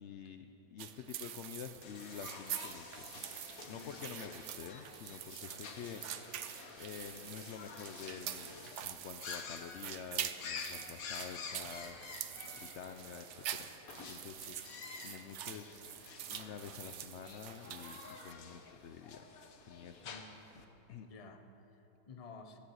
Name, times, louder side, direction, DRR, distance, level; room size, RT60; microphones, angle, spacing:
voice 1, 0.0-3.1 3.7-6.4 6.8-12.1 12.6-13.7 14.1-19.2 19.7-20.1 20.9-21.1, left 7 dB, 90° left, 7 dB, 0.6 m, -48 dB
sound 1, 0.8-18.3, right 10 dB, 70° right, 0.7 m, -46 dB
sound 2, 1.8-20.6, left 5 dB, 55° left, 1.3 m, -50 dB
sound 3, 2.8-20.3, right 3 dB, 85° right, 2.0 m, -69 dB
voice 2, 3.7-4.2 20.0-20.7 21.0-22.6, left 4 dB, 40° left, 6 dB, 0.5 m, -54 dB
13.5 x 11.0 x 7.9 m, 3.0 s
omnidirectional pair, 1.9 m